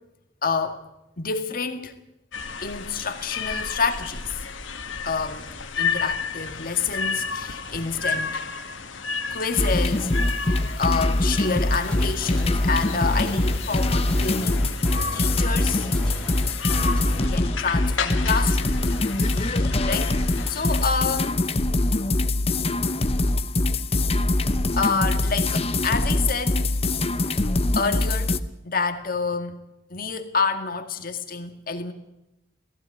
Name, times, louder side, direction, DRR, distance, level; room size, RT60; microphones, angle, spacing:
voice 1, 0.4-0.8 1.2-1.9 2.6-4.4 5.1-8.5 9.3-10.2 10.4-14.7 15.1-15.9 17.2-18.7 19.3-21.4 24.7-26.6 27.8-28.4 28.6-29.6 29.9-31.9, left 5 dB, 50° left, 2.0 m, -28 dB
sound 1, 2.3-21.0, left 5 dB, 85° left, 2.0 m, -33 dB
sound 2, 9.6-28.4, left 2 dB, 30° left, 0.9 m, -23 dB
sound 3, 11.9-17.4, left 1 dB, 5° left, 3.0 m, -37 dB
18.5 x 15.5 x 9.7 m
head